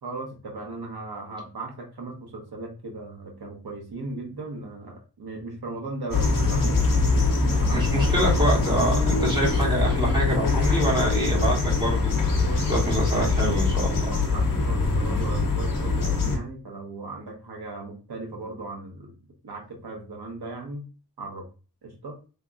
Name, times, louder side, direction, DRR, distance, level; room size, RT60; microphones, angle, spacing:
voice 1, 0.0-6.9 7.5-8.6 12.4-13.1 14.0-19.2 19.4-20.8 21.2-21.5 21.8-22.2, right 2 dB, 80° right, 1 dB, 1.0 m, -37 dB
sound 1, 6.1-16.4, left 3 dB, 60° left, 1.0 m, -23 dB
voice 2, 7.7-12.1 12.7-14.1, right 1 dB, 15° right, -5 dB, 1.7 m, -26 dB
3.4 x 2.9 x 2.4 m, 0.34 s
wide cardioid pair, 105°, 38 cm